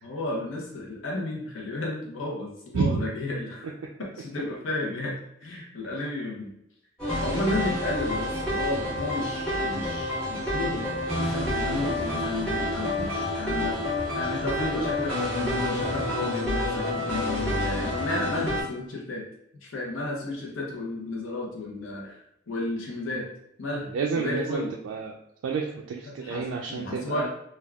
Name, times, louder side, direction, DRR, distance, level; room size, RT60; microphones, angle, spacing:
voice 1, 0.0-3.7 4.0-5.1 5.4-6.5 7.2-13.8 14.1-19.2 19.6-22.2 22.5-23.3 23.6-24.7 26.1-27.3, left 2 dB, 90° left, -2 dB, 0.7 m, -33 dB
voice 2, 2.7-3.0 23.9-25.1 25.4-27.3, right 5 dB, 90° right, 0 dB, 0.3 m, -29 dB
sound 1, 7.0-18.6, left 1 dB, 5° left, 1.5 m, -28 dB
3.4 x 2.2 x 2.3 m, 0.80 s
head